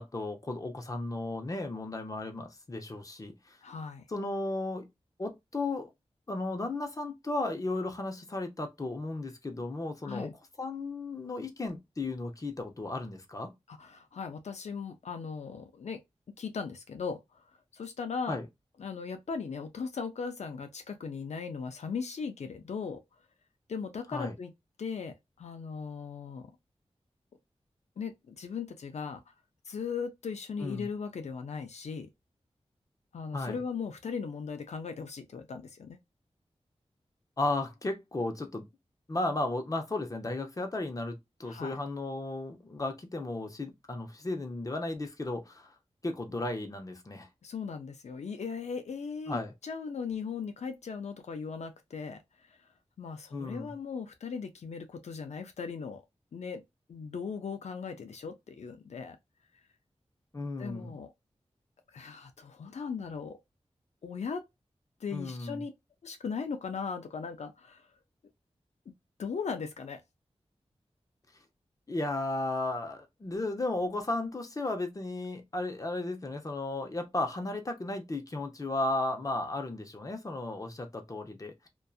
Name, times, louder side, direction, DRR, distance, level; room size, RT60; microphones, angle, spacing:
voice 1, 0.0-3.6 4.1-4.9 5.2-5.9 6.3-10.3 10.6-13.5 18.3-18.4 24.1-24.4 30.6-30.9 33.3-33.6 37.4-38.6 39.1-45.7 46.0-47.3 49.3-49.5 53.3-53.7 60.3-60.9 65.1-65.6 71.9-81.7, left 2 dB, 30° left, 0.6 m, -34 dB
voice 2, 3.6-4.1 10.0-10.3 13.7-16.0 16.4-17.4 17.7-18.4 18.8-23.0 23.7-24.5 24.8-26.5 28.0-29.3 29.7-32.1 33.1-36.0 41.4-41.8 47.4-52.6 53.0-56.0 56.3-56.6 56.9-59.2 60.6-61.1 61.9-63.4 64.0-64.4 65.0-65.7 66.0-67.9 69.2-70.0, left 5 dB, 85° left, 0.4 m, -38 dB
2.6 x 2.2 x 2.3 m
wide cardioid pair, 75°, 11 cm